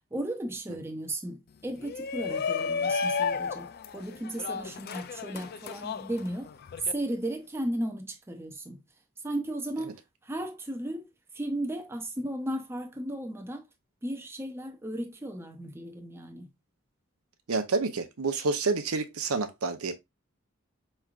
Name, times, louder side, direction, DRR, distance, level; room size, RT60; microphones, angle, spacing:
voice 1, 0.1-6.5 6.9-8.8 9.2-10.0 10.2-11.1 11.3-13.6 14.0-16.5, right 1 dB, 10° right, 0.5 m, -35 dB
Shout, 1.8-6.9, left 5 dB, 45° left, 0.3 m, -32 dB
voice 2, 17.5-19.9, right 4 dB, 85° right, 0.6 m, -28 dB
4.5 x 3.2 x 2.4 m
head